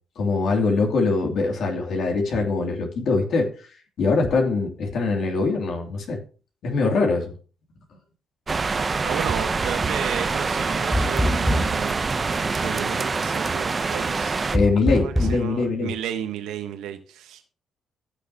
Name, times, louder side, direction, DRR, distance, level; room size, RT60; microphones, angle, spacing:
voice 1, 0.2-3.5 4.0-6.2 6.6-7.3 14.5-15.9, left 3 dB, 70° left, 1 dB, 2.9 m, -22 dB
sound 1, 8.5-14.6, right 4 dB, 30° right, 0.8 m, -25 dB
voice 2, 8.7-14.4 15.0-17.5, right 9 dB, 90° right, 7 dB, 1.3 m, -33 dB
sound 2, 10.9-11.9 14.5-15.5, equal, ahead, 0.8 m, -23 dB
15.5 x 6.6 x 2.9 m, 0.38 s
cardioid pair, 90°, 0 cm